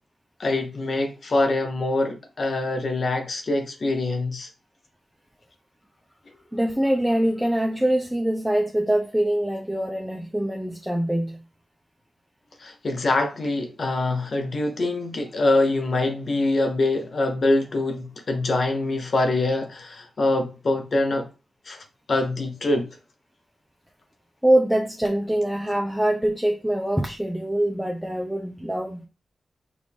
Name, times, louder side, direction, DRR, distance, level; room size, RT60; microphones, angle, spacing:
voice 1, 0.4-4.5 12.6-21.3 21.7-22.9, left 2 dB, 55° left, 0.8 m, -24 dB
voice 2, 6.5-11.4 24.4-29.1, right 1 dB, 5° right, 0.5 m, -24 dB
4.7 x 2.5 x 3.5 m
cardioid pair, 70°, 0 cm